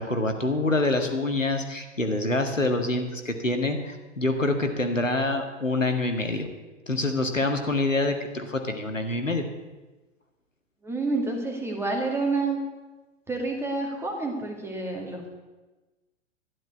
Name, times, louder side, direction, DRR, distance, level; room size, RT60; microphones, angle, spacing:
voice 1, 0.0-6.5 6.9-9.4, left 2 dB, 85° left, 5 dB, 1.8 m, -26 dB
voice 2, 10.8-12.6 13.3-15.3, right 3 dB, 5° right, 1 dB, 2.1 m, -28 dB
12.0 x 11.0 x 8.2 m, 1.2 s
figure-of-eight pair, 110°, 37 cm